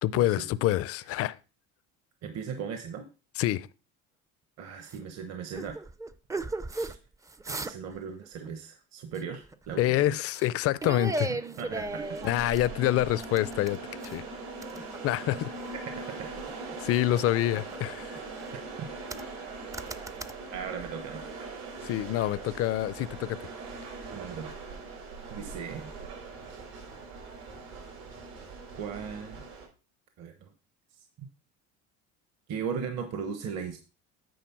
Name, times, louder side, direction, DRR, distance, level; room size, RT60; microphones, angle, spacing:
voice 1, 0.0-1.4 3.4-3.7 9.8-11.3 12.2-13.8 14.0-14.2 15.0-15.5 16.8-18.2 21.8-23.4, left 14 dB, 45° left, 0.5 m, -27 dB
voice 2, 2.2-3.1 4.6-5.8 6.7-7.0 7.5-10.2 11.6-12.1 15.7-16.3 18.5-18.6 20.5-21.2 24.1-24.6 25.3-25.9 28.8-29.4 30.2-30.5 31.0-31.3 32.5-33.8, right 6 dB, 55° right, 1.1 m, -38 dB
sound 1, 4.9-5.0 5.5-7.0 7.3-8.5 9.1-9.9 10.3-10.5 10.8-12.7 13.2-14.2 14.6-15.8 16.2-17.0 17.5-18.6 19.1-19.4 19.7-20.3, right 2 dB, 10° right, 0.4 m, -36 dB
sound 2, 11.6-29.7, right 3 dB, 85° right, 5.3 m, -41 dB
9.3 x 4.0 x 6.0 m
supercardioid pair, 110°, 32 cm